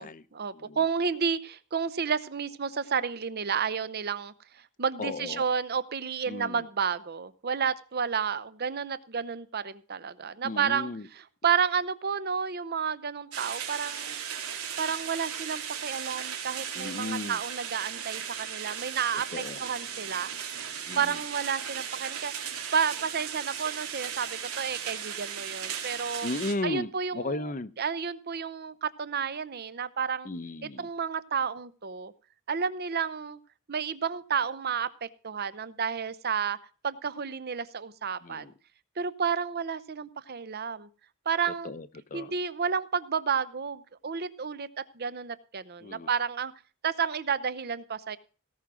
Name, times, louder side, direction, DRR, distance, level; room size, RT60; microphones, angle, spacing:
voice 1, 0.0-14.2 14.8-20.3 21.0-26.3 26.6-30.3 30.8-32.1 32.5-33.4 33.7-36.6 36.8-38.5 39.0-40.9 41.3-41.7 42.1-44.7 44.9-46.5 46.8-48.2, right 6 dB, 45° right, 16 dB, 0.7 m, -31 dB
voice 2, 5.0-5.4 6.3-6.6 10.4-11.0 16.7-17.4 19.3-19.6 20.9-21.0 26.2-26.9 27.1-27.7 30.2-30.9 38.2-38.5 41.6-42.3 45.8-46.1, left 2 dB, 35° left, 16 dB, 0.7 m, -35 dB
sound 1, 13.3-26.5, right 8 dB, 85° right, 2.9 m, -37 dB
17.5 x 6.1 x 6.1 m, 0.37 s
head